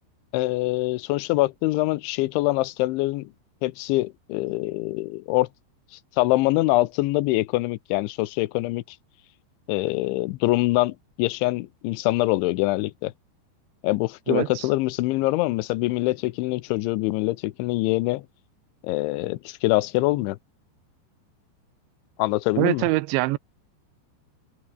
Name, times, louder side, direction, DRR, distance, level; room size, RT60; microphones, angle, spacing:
voice 1, 0.3-3.3 3.6-5.5 6.2-8.8 9.7-13.1 13.8-18.2 18.8-20.4 22.2-22.8, left 19 dB, 85° left, 3.2 m, -24 dB
voice 2, 14.3-14.7 22.6-23.4, right 20 dB, 90° right, 3.0 m, -23 dB
open air
omnidirectional pair, 5.3 m